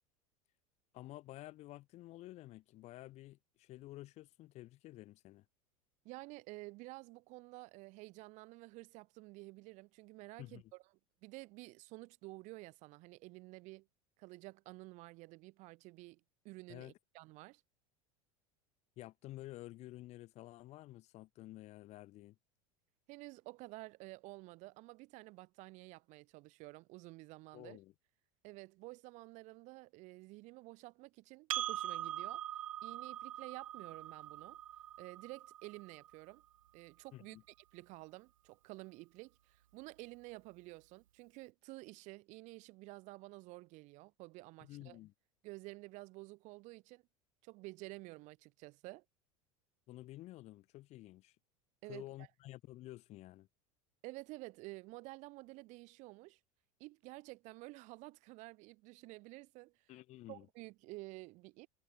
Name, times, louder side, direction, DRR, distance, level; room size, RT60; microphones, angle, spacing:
voice 1, 0.9-5.4 10.4-10.7 16.7-16.9 19.0-22.4 27.5-27.9 37.1-37.4 44.6-45.1 49.9-51.4 51.9-53.5 59.9-60.5, left 16 dB, 40° left, 0.9 m, -51 dB
voice 2, 6.0-10.8 11.2-13.9 14.2-17.6 23.1-27.8 28.4-32.4 32.8-34.6 35.0-36.4 36.7-37.4 37.7-45.0 45.4-47.0 47.4-49.0 51.8-52.3 54.0-56.4 56.8-59.9 60.3-61.7, right 22 dB, 40° right, 0.8 m, -51 dB
Percussion, 31.5-36.3, right 12 dB, 70° right, 0.4 m, -42 dB
figure-of-eight pair, 75°, 18 cm